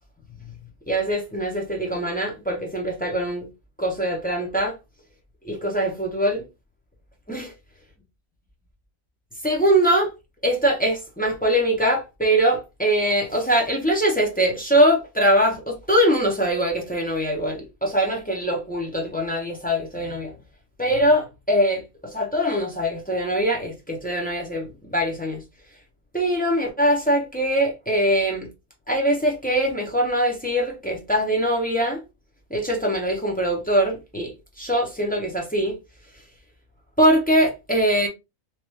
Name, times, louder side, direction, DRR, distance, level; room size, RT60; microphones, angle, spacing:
voice 1, 0.9-3.5 3.8-4.7 5.4-6.4 7.3-7.5 9.4-10.1 10.4-20.3 20.8-25.4 26.1-28.5 28.9-32.0 32.5-34.3 34.6-35.7 37.0-38.1, right 1 dB, 10° left, 0.6 m, -22 dB
3.0 x 2.6 x 3.1 m
omnidirectional pair, 1.5 m